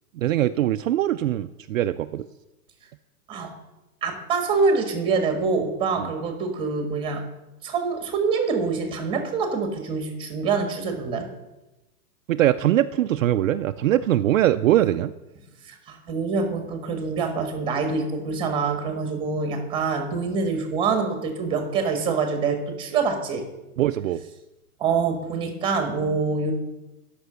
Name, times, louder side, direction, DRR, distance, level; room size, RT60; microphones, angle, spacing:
voice 1, 0.2-2.3 6.0-6.1 12.3-15.1 23.8-24.2, right 13 dB, 65° right, 10 dB, 0.5 m, -22 dB
voice 2, 4.0-7.2 7.6-11.2 14.8-14.9 15.6-23.4 24.8-26.5, right 4 dB, 10° right, 6 dB, 1.5 m, -25 dB
11.5 x 6.0 x 6.9 m, 1.0 s
hypercardioid pair, 155°, 44 cm